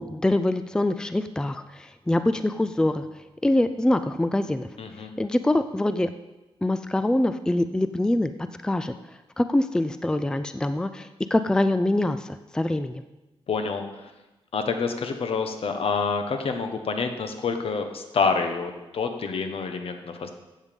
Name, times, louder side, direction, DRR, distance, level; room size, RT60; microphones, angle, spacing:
voice 1, 0.0-3.0 3.4-4.7 5.2-6.1 6.6-8.9 9.4-13.0, left 1 dB, 5° left, 11 dB, 0.4 m, -24 dB
voice 2, 4.8-5.1 13.5-14.1 14.5-20.3, left 5 dB, 70° left, 6 dB, 1.3 m, -27 dB
14.5 x 8.1 x 5.3 m, 1.1 s
wide cardioid pair, 155°, 10 cm